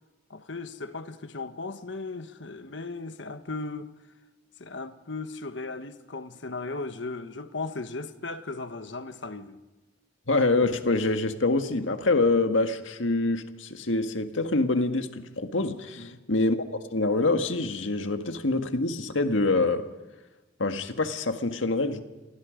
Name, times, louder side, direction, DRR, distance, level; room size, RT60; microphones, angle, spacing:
voice 1, 0.3-3.9 4.6-9.6 16.0-16.3, left 3 dB, 70° left, 1.4 m, -37 dB
voice 2, 10.3-16.6 16.9-19.9 20.6-22.0, left 2 dB, 85° left, 1.7 m, -25 dB
29.5 x 23.5 x 5.2 m
head